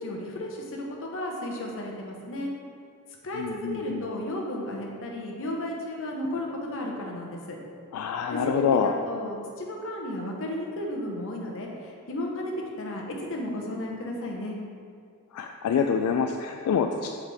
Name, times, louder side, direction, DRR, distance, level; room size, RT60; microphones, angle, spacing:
voice 1, 0.0-2.5 3.2-7.6 8.3-14.6, left 1 dB, 65° left, 0 dB, 0.9 m, -33 dB
voice 2, 3.3-4.1 7.9-9.0 15.3-17.1, left 6 dB, 90° left, 5 dB, 0.3 m, -26 dB
5.8 x 4.9 x 3.4 m, 2.3 s
head